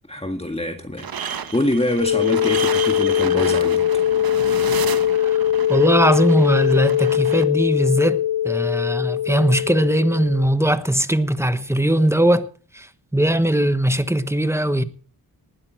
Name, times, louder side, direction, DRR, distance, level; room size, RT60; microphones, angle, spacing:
voice 1, 0.1-3.8, left 1 dB, 15° left, 1.8 m, -25 dB
sound 1, 1.0-7.4, right 7 dB, 70° right, 1.2 m, -31 dB
sound 2, 2.0-10.5, left 11 dB, 60° left, 2.5 m, -21 dB
voice 2, 5.7-12.5 12.7-12.9 13.1-14.8, right 1 dB, 5° right, 1.1 m, -19 dB
19.5 x 9.6 x 4.5 m
cardioid pair, 80°, 37 cm